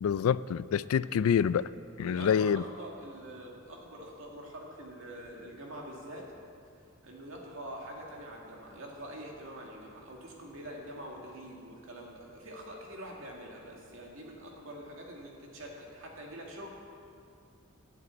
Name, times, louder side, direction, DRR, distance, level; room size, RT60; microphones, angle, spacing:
voice 1, 0.0-1.7 2.0-2.6, left 7 dB, 80° left, 17 dB, 0.3 m, -27 dB
voice 2, 2.0-6.3 7.0-16.7, right 1 dB, 70° right, -1 dB, 2.2 m, -45 dB
11.0 x 7.6 x 8.5 m, 2.4 s
head